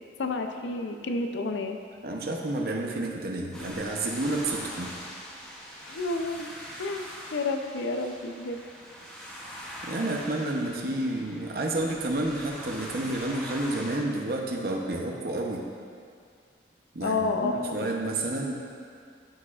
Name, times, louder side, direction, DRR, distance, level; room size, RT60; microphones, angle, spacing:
voice 1, 0.2-1.8 5.8-6.5 6.8-8.6 17.0-17.9, left 3 dB, 90° left, 5 dB, 0.5 m, -30 dB
voice 2, 2.0-4.9 9.8-15.7 16.9-18.6, right 2 dB, 55° right, 0 dB, 0.8 m, -30 dB
sound 1, 3.5-14.0, equal, 5° left, 0.8 m, -43 dB
12.5 x 4.8 x 2.4 m, 2.2 s
head